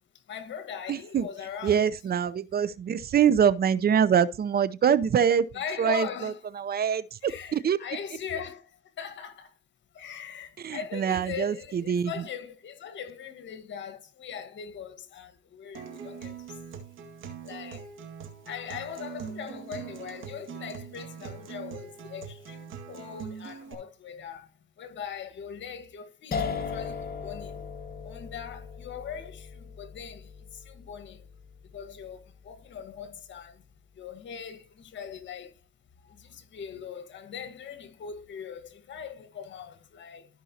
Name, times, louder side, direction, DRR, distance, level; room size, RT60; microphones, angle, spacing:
voice 1, 0.3-1.8 5.5-6.4 7.2-8.6 9.0-9.5 9.9-16.3 17.4-17.9 18.5-24.5 24.8-27.7 28.0-30.3 30.7-31.2 31.7-33.6 34.0-35.5 36.2-40.3, left 7 dB, 65° left, 1.6 m, -40 dB
voice 2, 0.9-1.3 1.6-5.4 5.8-6.3 6.6-7.8 10.6-12.1, right 8 dB, 50° right, 0.7 m, -24 dB
Acoustic guitar, 15.7-23.7, right 7 dB, 80° right, 2.0 m, -42 dB
sound 1, 26.3-33.2, left 5 dB, 50° left, 1.3 m, -38 dB
14.0 x 5.4 x 2.8 m
cardioid pair, 90°, 20 cm